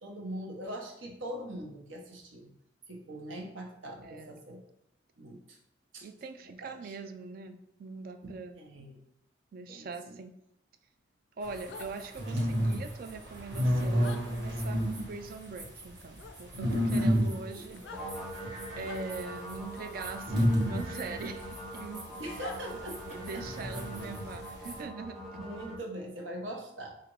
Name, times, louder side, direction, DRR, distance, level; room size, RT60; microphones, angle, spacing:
voice 1, 0.0-2.5 2.9-4.6 5.2-5.6 5.9-6.1 6.5-6.9 8.6-9.0 9.7-10.2 17.0-17.8 22.2-23.4 25.4-26.9, right 1 dB, 80° right, 1 dB, 0.9 m, -42 dB
voice 2, 6.0-8.6 9.5-10.3 11.4-14.8 15.1-18.1 18.8-22.4 23.1-25.4, right 4 dB, 50° right, 8 dB, 0.3 m, -42 dB
sound 1, 11.4-24.8, equal, 65° right, 1.2 m, -32 dB
sound 2, 11.7-11.9 14.0-14.2 16.2-16.4 17.7-18.0 18.8-19.0 21.1-21.2 22.4-22.6, left 5 dB, 70° left, 0.4 m, -45 dB
sound 3, 17.9-25.8, equal, ahead, 0.6 m, -43 dB
5.0 x 2.5 x 3.0 m, 0.79 s
head